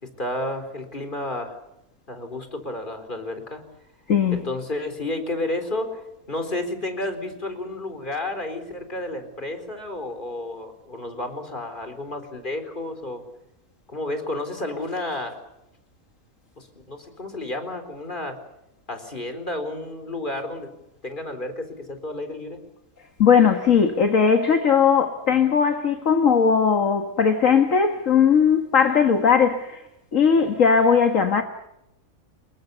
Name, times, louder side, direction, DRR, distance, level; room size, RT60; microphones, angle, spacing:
voice 1, 0.0-1.6 2.1-3.6 4.3-13.2 13.9-15.4 16.6-18.4 18.9-20.7 21.0-22.6, left 2 dB, 35° left, 4.3 m, -31 dB
voice 2, 4.1-4.4 23.2-29.8 30.1-31.4, left 6 dB, 65° left, 1.9 m, -18 dB
27.5 x 22.5 x 6.9 m
omnidirectional pair, 1.5 m